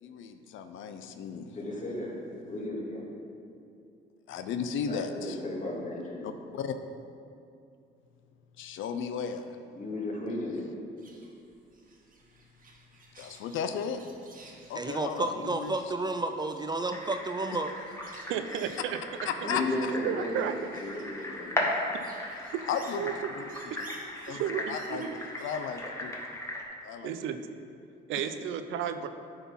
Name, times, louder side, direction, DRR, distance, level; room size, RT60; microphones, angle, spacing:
voice 1, 0.0-1.6 4.3-5.4 6.2-6.8 8.6-9.4 13.2-14.0 14.7-15.9 19.3-19.6 22.7-23.1 23.4-23.5 24.3-24.4 24.7-25.1 25.4-26.2 26.8-27.1, left 7 dB, 80° left, 8 dB, 0.5 m, -35 dB
voice 2, 1.5-2.1 2.4-3.1 4.9-6.3 9.7-10.6 19.3-21.8, left 1 dB, 40° left, -3 dB, 2.0 m, -35 dB
sound 1, 11.0-25.8, right 3 dB, 45° right, 1.4 m, -56 dB
voice 3, 14.8-17.7, right 2 dB, 20° right, 7 dB, 0.4 m, -31 dB
sound 2, 16.9-26.6, left 1 dB, 15° left, 1.4 m, -37 dB
voice 4, 18.3-19.0 20.0-20.7 22.5-22.6 23.0-23.1 24.3-25.2 27.0-27.4 28.1-29.1, right 9 dB, 90° right, 9 dB, 0.5 m, -32 dB
9.7 x 4.0 x 5.5 m, 2.6 s
cardioid pair, 90°, 20 cm